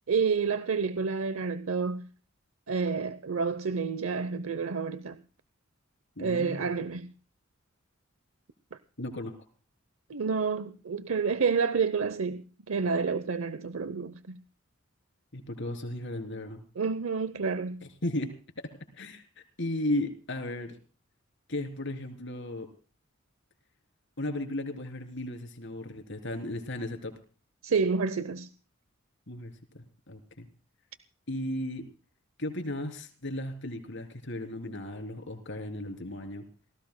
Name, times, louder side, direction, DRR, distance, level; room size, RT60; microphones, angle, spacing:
voice 1, 0.1-2.1 2.7-5.2 6.2-7.1 8.7-8.8 10.1-14.4 16.8-17.8 27.6-28.5, right 5 dB, 80° right, 0.7 m, -29 dB
voice 2, 6.2-6.7 9.0-9.3 15.3-16.6 18.0-18.3 18.6-18.7 18.9-19.2 19.6-20.7 21.5-22.7 24.2-27.1 29.3-29.5 30.1-30.5 31.3-31.8 32.4-36.4, left 1 dB, 60° left, 3.4 m, -35 dB
28.0 x 17.5 x 2.2 m
head